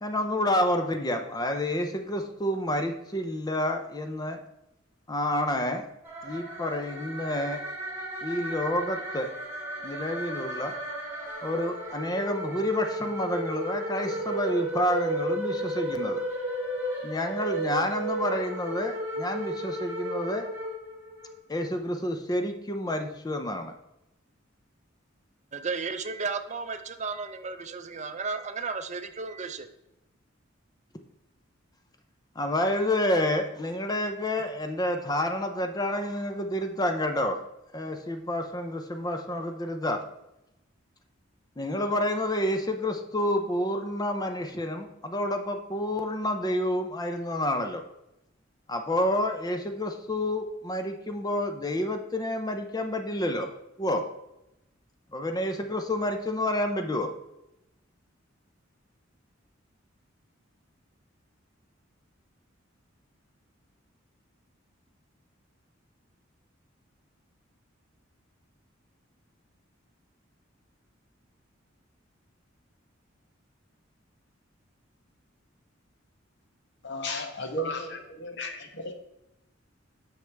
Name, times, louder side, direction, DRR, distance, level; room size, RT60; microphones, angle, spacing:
voice 1, 0.0-4.4 5.1-5.9 6.2-7.6 8.2-9.3 9.8-10.8 11.4-16.2 17.0-20.5 21.5-23.7 32.4-37.4 37.7-40.0 41.6-47.8 48.7-53.5 53.8-54.1 55.1-57.1, left 1 dB, 20° left, 5 dB, 0.6 m, -29 dB
sound 1, 6.0-21.3, right 1 dB, 15° right, 3.2 m, -34 dB
voice 2, 25.5-29.7, right 4 dB, 35° right, 9 dB, 0.6 m, -34 dB
voice 3, 76.8-78.9, left 1 dB, 60° left, 5 dB, 1.1 m, -34 dB
9.6 x 6.4 x 3.4 m, 0.89 s
head